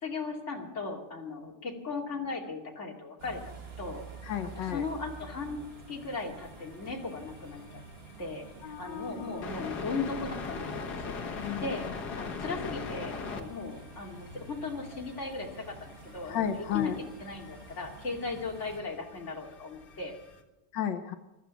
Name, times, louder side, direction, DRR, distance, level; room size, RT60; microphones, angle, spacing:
voice 1, 0.0-4.1 4.7-5.6 5.9-7.8 8.2-11.9 12.2-16.4 16.7-16.9 17.2-20.1, left 4 dB, 40° left, 0 dB, 2.9 m, -37 dB
sound 1, 3.2-18.8, right 4 dB, 35° right, 1.6 m, -49 dB
voice 2, 4.2-4.9 8.6-9.4 11.4-11.7 16.3-17.0 20.7-21.2, left 9 dB, 90° left, 8 dB, 1.6 m, -33 dB
sound 2, 4.7-4.8 5.2-5.3 5.7-20.4, left 5 dB, 65° left, 2.1 m, -42 dB
15.0 x 13.0 x 7.0 m, 1.0 s
omnidirectional pair, 1.9 m